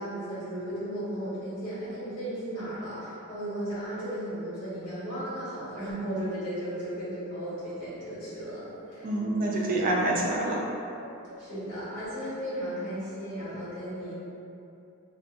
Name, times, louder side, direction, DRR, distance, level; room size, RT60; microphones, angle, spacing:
voice 1, 0.0-9.1 11.4-14.1, right 1 dB, 80° left, -11 dB, 1.3 m, -35 dB
voice 2, 9.0-10.6 10.9-11.1, right 1 dB, 40° right, -2 dB, 0.3 m, -27 dB
2.6 x 2.3 x 2.5 m, 2.7 s
head